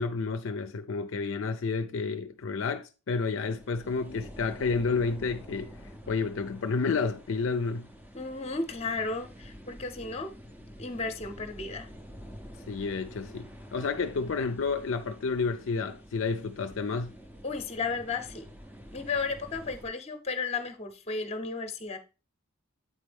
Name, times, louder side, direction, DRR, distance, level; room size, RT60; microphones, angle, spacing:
voice 1, 0.0-5.7 6.1-7.9 12.7-17.1, left 4 dB, 60° left, 0.5 m, -30 dB
sound 1, 3.4-19.9, equal, 10° right, 0.6 m, -48 dB
voice 2, 8.1-10.3 10.8-11.9 17.4-18.5 18.9-22.0, left 4 dB, 30° left, 0.7 m, -34 dB
8.2 x 4.4 x 3.4 m
head